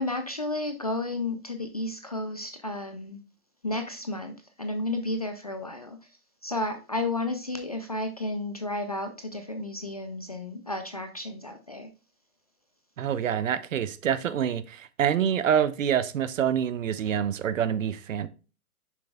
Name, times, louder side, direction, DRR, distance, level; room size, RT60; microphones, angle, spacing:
voice 1, 0.0-3.2 3.6-6.0 6.4-11.9, left 2 dB, 30° left, 0.3 m, -32 dB
voice 2, 13.0-18.3, right 9 dB, 60° right, 0.8 m, -26 dB
7.0 x 6.1 x 2.3 m
hypercardioid pair, 140°, 44 cm